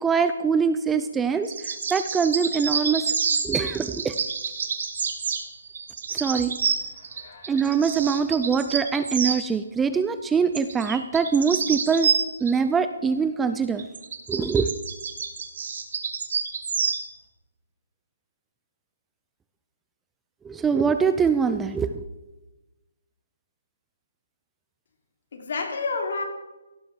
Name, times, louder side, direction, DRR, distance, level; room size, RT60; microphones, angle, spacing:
voice 1, 0.0-3.1 3.4-4.1 6.1-6.5 7.5-12.1 12.4-13.8 14.3-14.7 20.4-22.0, right 6 dB, 5° right, 10 dB, 0.4 m, -23 dB
sound 1, 1.4-9.4 10.5-12.5 13.8-17.1, right 6 dB, 50° right, 2.0 m, -28 dB
voice 2, 6.9-7.8 25.3-26.2, left 4 dB, 55° left, 3 dB, 3.4 m, -31 dB
16.5 x 7.6 x 7.4 m, 1.1 s
hypercardioid pair, 170°, 0 cm